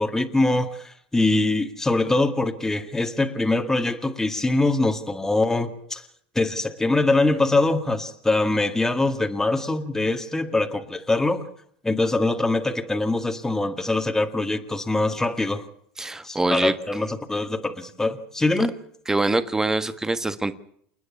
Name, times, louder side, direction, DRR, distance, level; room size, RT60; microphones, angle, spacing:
voice 1, 0.0-6.0 6.4-11.4 11.8-15.7 16.2-18.7, left 2 dB, 10° left, 5 dB, 2.0 m, -23 dB
voice 2, 16.0-16.7 19.1-20.6, right 2 dB, 10° right, 12 dB, 1.5 m, -24 dB
28.5 x 9.7 x 9.8 m, 0.66 s
supercardioid pair, 110°, 5 cm